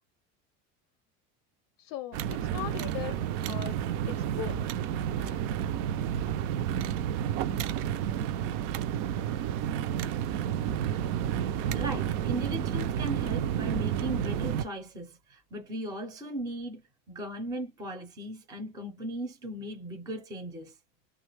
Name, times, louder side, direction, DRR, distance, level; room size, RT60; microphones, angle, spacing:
voice 1, 1.8-4.6 5.2-5.6, left 12 dB, 45° left, 0.5 m, -40 dB
sound 1, 2.1-14.7, right 10 dB, 85° right, 0.5 m, -30 dB
voice 2, 11.7-16.8 17.1-20.7, right 1 dB, 10° right, 0.4 m, -37 dB
3.5 x 2.3 x 3.2 m
cardioid pair, 175°, 36 cm